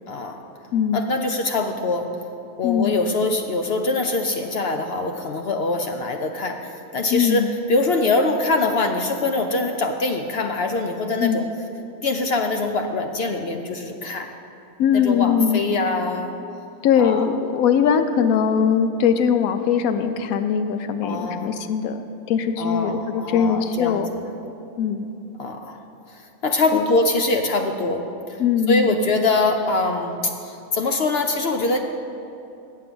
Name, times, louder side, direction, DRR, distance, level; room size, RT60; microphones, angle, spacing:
voice 1, 0.1-0.4 0.9-2.1 2.6-11.4 12.0-14.3 14.9-16.3 17.0-17.3 21.0-21.5 22.6-24.0 25.4-25.8 26.1-28.4 28.7-31.8, left 3 dB, 60° left, 5 dB, 0.7 m, -23 dB
voice 2, 0.7-1.0 2.6-3.0 7.1-7.5 11.2-11.4 14.8-15.6 16.8-24.1 24.8-25.1 26.7-26.8 28.4-29.0, left 7 dB, 90° left, 9 dB, 1.0 m, -21 dB
7.6 x 7.4 x 6.7 m, 2.8 s
omnidirectional pair, 1.4 m